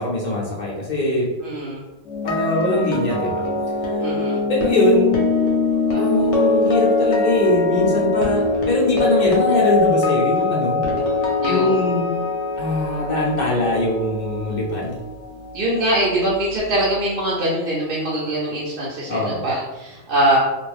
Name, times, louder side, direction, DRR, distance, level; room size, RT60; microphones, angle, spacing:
voice 1, 0.0-1.3 2.2-3.5 4.5-5.1 5.9-10.8 11.4-12.1 12.6-15.0 19.1-19.4, left 1 dB, 45° left, -4 dB, 0.7 m, -21 dB
voice 2, 1.4-1.8 4.0-4.4 11.4-11.8 15.5-20.4, right 1 dB, 55° right, -7 dB, 0.7 m, -22 dB
sound 1, 2.1-16.1 16.4-16.7, left 3 dB, 70° left, 1.0 m, -22 dB
2.5 x 2.2 x 3.1 m, 1.1 s
omnidirectional pair, 1.3 m